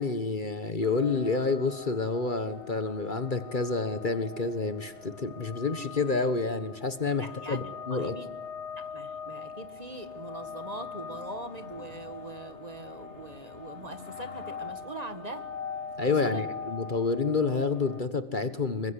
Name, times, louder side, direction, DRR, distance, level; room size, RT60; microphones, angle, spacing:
voice 1, 0.0-8.1 16.0-18.9, left 4 dB, 40° left, 11 dB, 1.4 m, -29 dB
sound 1, 0.8-18.0, left 6 dB, 60° left, 2.2 m, -42 dB
voice 2, 7.2-8.3 8.8-15.4 16.0-16.5, right 2 dB, 30° right, 9 dB, 1.9 m, -42 dB
26.5 x 23.0 x 8.3 m, 1.1 s
omnidirectional pair, 1.3 m